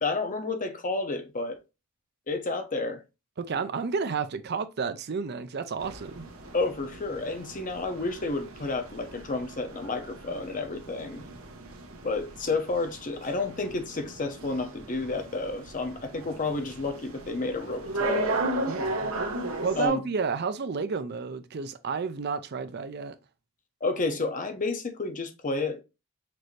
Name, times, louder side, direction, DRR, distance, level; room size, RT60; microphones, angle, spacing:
voice 1, 0.0-1.6 2.3-3.0 6.5-11.2 12.0-18.4 19.8-20.0 23.8-25.8, left 3 dB, 40° left, 0.7 m, -30 dB
voice 2, 3.4-6.3 18.7-19.1 19.6-23.2, right 5 dB, 50° right, 0.5 m, -31 dB
sound 1, 5.8-19.9, right 2 dB, 85° right, 1.1 m, -36 dB
6.0 x 2.7 x 3.1 m
head